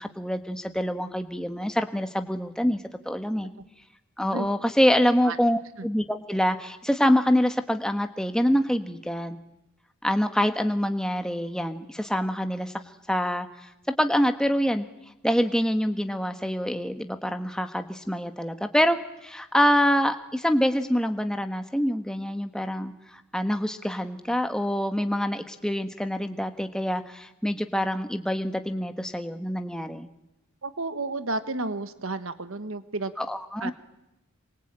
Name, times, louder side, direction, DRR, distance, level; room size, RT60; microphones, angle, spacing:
voice 1, 0.0-2.8 3.0-3.5 4.2-9.4 10.0-12.7 13.1-14.8 15.2-30.1 33.2-33.7, equal, 5° left, 7 dB, 1.3 m, -26 dB
voice 2, 30.6-33.1 33.6-33.7, right 2 dB, 75° right, 12 dB, 1.4 m, -31 dB
27.0 x 23.5 x 8.9 m, 0.91 s
head